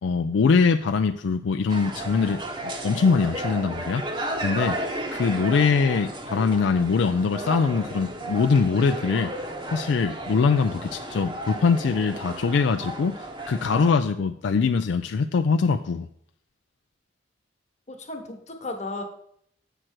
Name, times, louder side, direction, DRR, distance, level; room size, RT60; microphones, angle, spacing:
voice 1, 0.0-2.4 2.8-4.0 4.4-4.8 5.1-9.3 9.7-16.1, left 5 dB, 70° left, 8 dB, 0.4 m, -22 dB
sound 1, 1.7-13.9, right 1 dB, 25° right, 0.9 m, -33 dB
voice 2, 17.9-19.0, left 2 dB, 35° left, 3 dB, 1.3 m, -34 dB
7.8 x 6.2 x 4.4 m, 0.68 s
head